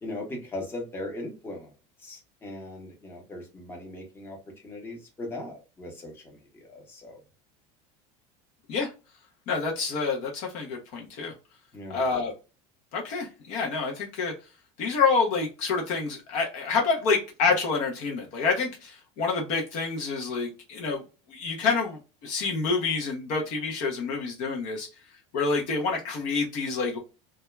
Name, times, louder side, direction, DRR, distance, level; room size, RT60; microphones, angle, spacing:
voice 1, 0.0-1.7 2.0-4.4 4.6-6.2 6.7-7.2 11.7-12.0, left 1 dB, 15° left, 0.8 m, -38 dB
voice 2, 9.5-11.3 11.9-12.3 12.9-14.3 14.8-21.0 21.3-24.9 25.3-27.0, left 4 dB, 45° left, 0.6 m, -27 dB
2.2 x 2.0 x 3.0 m
cardioid pair, 160°, 17 cm